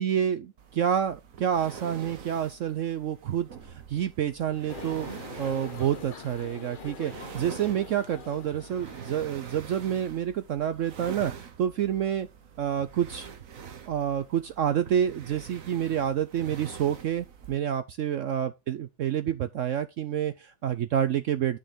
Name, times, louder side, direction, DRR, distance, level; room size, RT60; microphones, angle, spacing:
voice 1, 0.0-12.3 12.6-13.3 13.8-21.6, right 9 dB, 70° right, 0.7 m, -28 dB
sound 1, 0.6-17.6, right 7 dB, 55° right, 1.4 m, -45 dB
sound 2, 4.7-10.1, left 5 dB, 35° left, 0.9 m, -44 dB
10.0 x 6.4 x 3.5 m
omnidirectional pair, 1.9 m